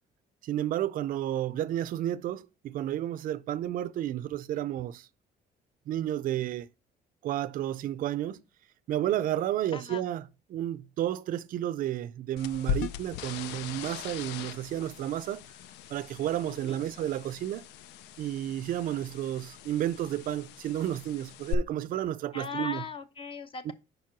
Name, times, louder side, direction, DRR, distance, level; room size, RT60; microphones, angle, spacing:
voice 1, 0.4-5.1 5.9-6.7 7.2-8.4 8.9-10.2 10.5-15.4 15.9-17.6 18.2-22.8 23.6-23.7, right 12 dB, 55° right, 0.4 m, -31 dB
sound 1, 12.4-21.5, left 9 dB, 90° left, 0.5 m, -39 dB
voice 2, 16.5-16.8 22.3-23.7, left 5 dB, 30° left, 0.8 m, -39 dB
5.3 x 4.6 x 5.8 m
cardioid pair, 110°, 17 cm